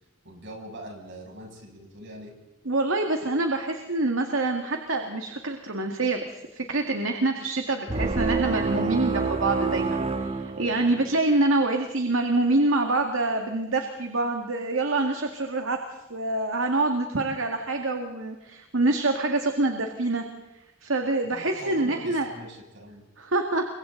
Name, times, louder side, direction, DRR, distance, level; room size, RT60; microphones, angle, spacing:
voice 1, 0.2-2.3 21.2-23.0, right 1 dB, 60° right, 0 dB, 7.3 m, -42 dB
voice 2, 2.7-6.2 6.5-15.8 16.1-20.2 20.8-22.3 23.2-23.6, right 2 dB, 80° right, 4 dB, 2.0 m, -26 dB
sound 1, 7.9-11.2, right 4 dB, 30° right, 1.0 m, -27 dB
29.0 x 24.5 x 4.0 m, 1.0 s
head